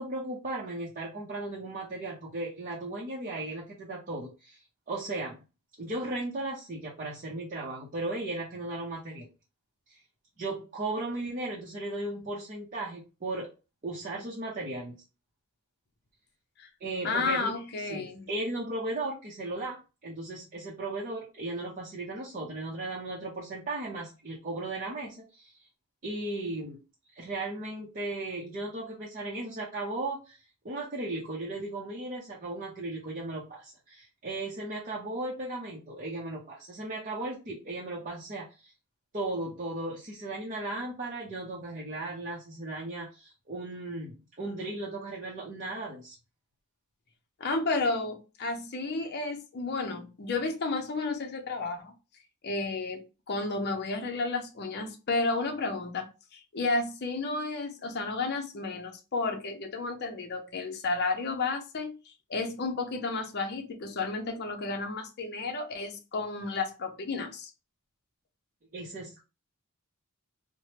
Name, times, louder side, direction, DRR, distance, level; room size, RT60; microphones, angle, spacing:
voice 1, 0.0-4.6 4.9-5.4 5.8-9.3 9.9-10.0 10.4-13.5 13.8-15.0 16.8-17.5 17.8-25.6 26.0-26.8 27.1-30.4 30.6-38.7 39.1-46.2 68.7-69.2, right 2 dB, 40° right, -4 dB, 0.7 m, -36 dB
voice 2, 17.0-18.3 47.4-51.9 52.4-67.5, left 3 dB, 45° left, 3 dB, 0.6 m, -32 dB
3.2 x 2.1 x 2.9 m, 0.30 s
head